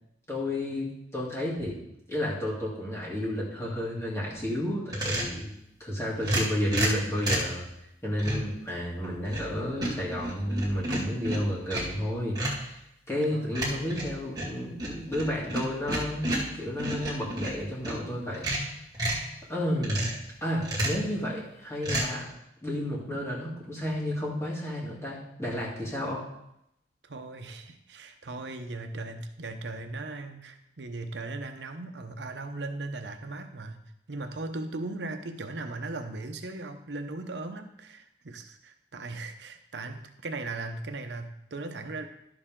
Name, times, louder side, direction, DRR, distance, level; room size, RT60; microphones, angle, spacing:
voice 1, 0.3-1.8 2.1-5.5 5.8-7.7 8.0-12.8 13.1-16.3 16.6-18.4 19.5-20.0 20.4-22.2 22.6-26.2, left 1 dB, 15° left, -6 dB, 2.8 m, -31 dB
sound 1, 4.9-5.4 6.2-7.5 8.2-8.5 9.0-9.5 9.8-12.0 12.4-12.7 13.5-18.0 18.3-19.3 19.8-20.2 20.6-21.1 21.8-22.1, right 1 dB, 25° right, 2.3 m, -31 dB
voice 2, 27.0-33.8 34.1-42.1, right 2 dB, 80° right, 6 dB, 0.8 m, -38 dB
11.5 x 6.9 x 3.7 m, 0.81 s
head